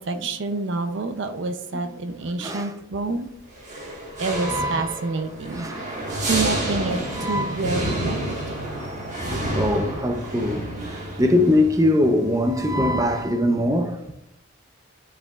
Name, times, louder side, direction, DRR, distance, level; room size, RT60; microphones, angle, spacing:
voice 1, 0.0-3.3 4.2-5.7 6.2-8.4, right 3 dB, 60° right, 0.5 m, -28 dB
sound 1, 3.5-13.3, right 1 dB, 35° right, 1.6 m, -30 dB
voice 2, 4.4-5.0 5.5-5.8 7.2-7.6 9.6-10.6 11.2-13.9, left 1 dB, 15° right, 0.6 m, -21 dB
11.5 x 4.8 x 2.4 m
head